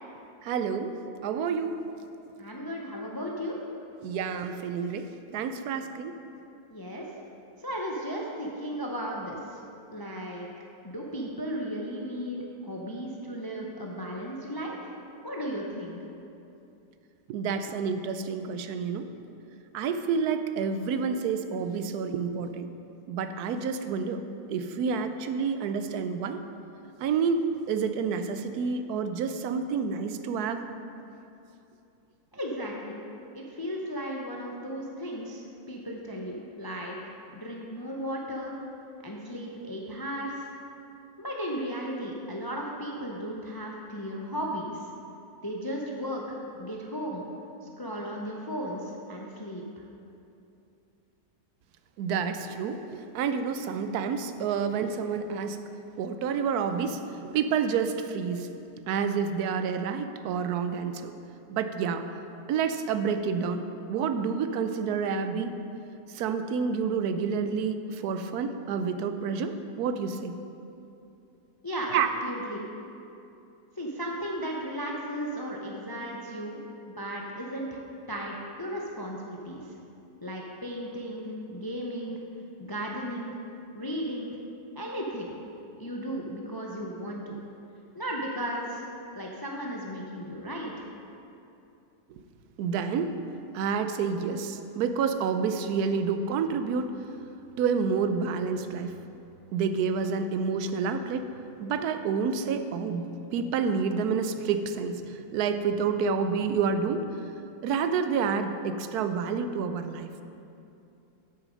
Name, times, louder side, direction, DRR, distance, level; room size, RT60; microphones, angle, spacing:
voice 1, 0.4-0.9 1.2-1.8 4.0-6.1 17.3-19.1 19.7-22.7 23.1-24.2 24.5-26.4 27.0-30.6 52.0-55.6 56.0-58.5 58.9-61.1 61.5-62.1 62.5-63.6 63.9-65.5 66.1-70.4 71.9-72.1 92.6-93.1 93.5-96.9 97.6-98.9 99.5-101.3 101.6-107.1 107.6-110.1, right 6 dB, 80° right, 9 dB, 1.1 m, -29 dB
voice 2, 2.4-3.6 6.7-7.1 7.6-9.6 9.9-10.5 10.8-14.9 15.2-16.0 32.3-33.0 33.3-38.5 39.0-40.5 41.2-44.9 45.4-47.2 47.6-49.8 71.6-72.6 73.8-77.8 78.1-79.7 80.2-82.2 82.6-83.3 83.7-84.4 84.8-85.3 85.8-87.4 87.9-88.8 89.1-90.9, equal, 35° left, -1 dB, 0.3 m, -35 dB
8.3 x 7.0 x 5.1 m, 2.7 s
omnidirectional pair, 1.6 m